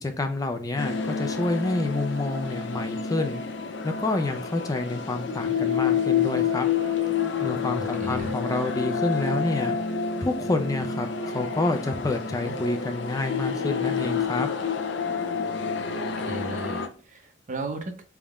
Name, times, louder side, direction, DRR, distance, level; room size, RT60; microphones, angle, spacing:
voice 1, 0.0-3.4 3.8-6.7 7.4-9.8 10.2-14.5, left 2 dB, 20° left, 6 dB, 0.3 m, -28 dB
sound 1, 0.8-16.9, left 6 dB, 75° left, 0.5 m, -28 dB
voice 2, 7.8-8.3 12.4-12.5 16.2-18.0, right 2 dB, 45° right, 6 dB, 0.7 m, -35 dB
4.1 x 3.5 x 2.3 m, 0.38 s
head